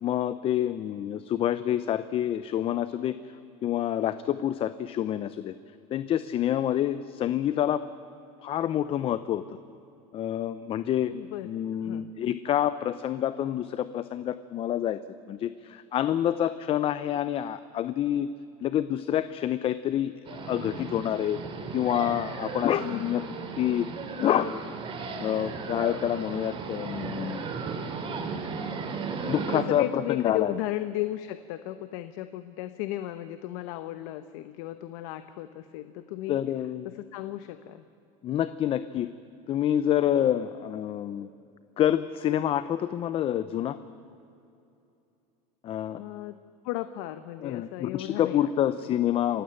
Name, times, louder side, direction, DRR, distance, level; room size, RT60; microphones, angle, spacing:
voice 1, 0.0-3.1 3.6-5.5 5.9-7.8 8.4-9.6 10.1-11.1 11.4-15.0 15.3-18.3 18.6-21.4 21.7-23.2 23.6-23.9 24.2-24.6 25.2-27.5 29.2-30.5 36.3-36.9 38.2-39.1 39.5-41.3 41.8-43.8 45.6-46.0 47.4-49.4, left 11 dB, 30° left, 13 dB, 0.6 m, -27 dB
voice 2, 11.1-11.5 11.8-12.1 22.9-23.3 29.5-36.4 36.8-37.9 46.0-46.4 46.6-48.5 48.8-49.0, left 14 dB, 65° left, 11 dB, 0.9 m, -35 dB
sound 1, 20.3-29.6, right 5 dB, 30° right, 2.5 m, -35 dB
27.0 x 15.5 x 8.9 m, 2.7 s
supercardioid pair, 140°, 18 cm